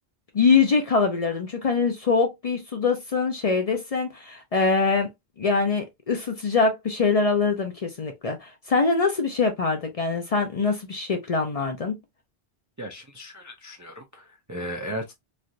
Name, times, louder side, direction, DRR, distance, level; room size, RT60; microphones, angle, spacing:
voice 1, 0.3-5.1 5.4-11.9, left 4 dB, 45° left, 0.5 m, -23 dB
voice 2, 12.8-15.1, equal, 30° right, 0.3 m, -36 dB
3.2 x 2.4 x 2.6 m
omnidirectional pair, 1.0 m